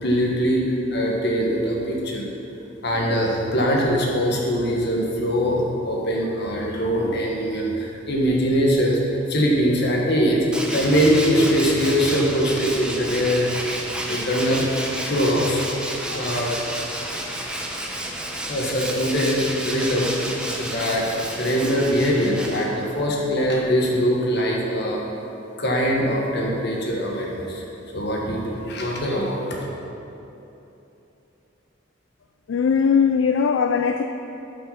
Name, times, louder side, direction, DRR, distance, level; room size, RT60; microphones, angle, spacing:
voice 1, 0.0-2.2 2.8-10.4 10.7-13.5 14.0-15.6 15.9-16.7 18.5-21.1 21.4-25.0 25.6-27.6 27.9-29.6, equal, 60° left, -2 dB, 1.5 m, -22 dB
Tools, 10.5-23.0, right 1 dB, 5° right, 0.7 m, -31 dB
voice 2, 32.5-34.0, left 6 dB, 75° left, 7 dB, 0.3 m, -19 dB
9.1 x 5.7 x 5.8 m, 3.0 s
head